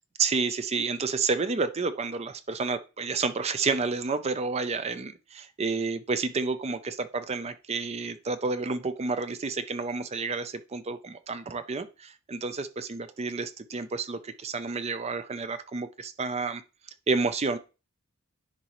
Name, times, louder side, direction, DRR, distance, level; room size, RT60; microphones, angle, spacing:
voice 1, 0.2-16.6 17.1-17.6, right 4 dB, 30° right, 12 dB, 0.5 m, -30 dB
10.0 x 4.1 x 3.0 m, 0.31 s
head